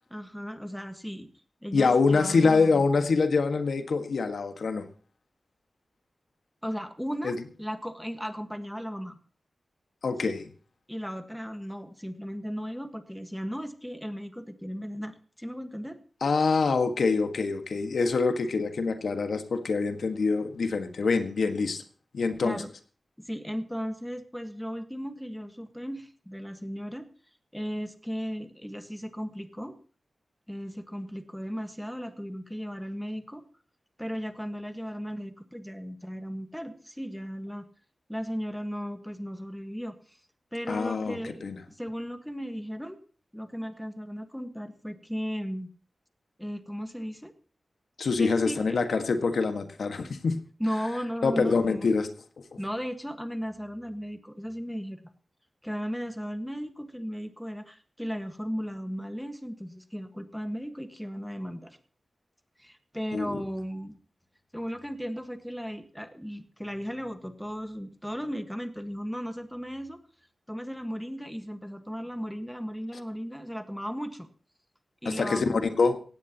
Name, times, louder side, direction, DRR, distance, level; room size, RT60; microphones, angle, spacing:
voice 1, 0.1-1.3 1.6-2.8 6.6-9.2 10.2-10.3 10.9-16.0 22.4-22.7 23.2-27.1 27.5-29.8 30.5-33.4 34.0-37.6 38.1-40.2 40.5-43.0 43.3-45.7 46.4-47.3 48.2-48.8 50.6-51.9 52.6-55.1 55.6-61.8 62.6-64.0 64.5-70.0 70.5-74.3 75.0-75.7, equal, ahead, 8 dB, 1.5 m, -36 dB
voice 2, 1.7-4.8 7.2-7.4 10.0-10.5 16.2-21.8 22.1-22.6 40.7-41.6 48.0-50.4 51.2-52.1 63.1-63.4 75.0-76.0, left 4 dB, 80° left, 7 dB, 1.6 m, -25 dB
17.0 x 17.0 x 2.9 m, 0.41 s
wide cardioid pair, 130°, 0 cm